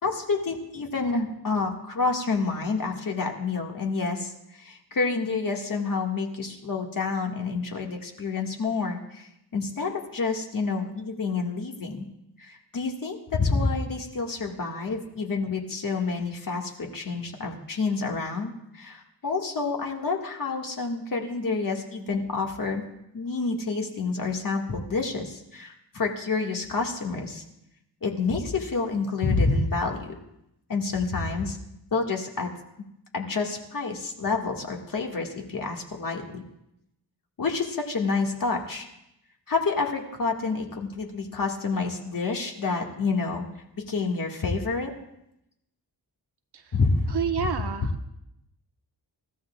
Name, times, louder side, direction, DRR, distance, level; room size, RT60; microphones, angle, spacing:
voice 1, 0.0-12.1 12.4-22.8 23.1-27.4 28.0-30.1 30.7-31.6 31.9-32.5 33.1-36.4 37.4-38.9 39.5-43.5 43.9-44.9 46.7-47.0, left 4 dB, 50° left, 1 dB, 1.9 m, -28 dB
voice 2, 47.1-48.1, right 7 dB, 70° right, 5 dB, 1.3 m, -30 dB
28.0 x 15.0 x 2.4 m, 0.82 s
wide cardioid pair, 170°, 41 cm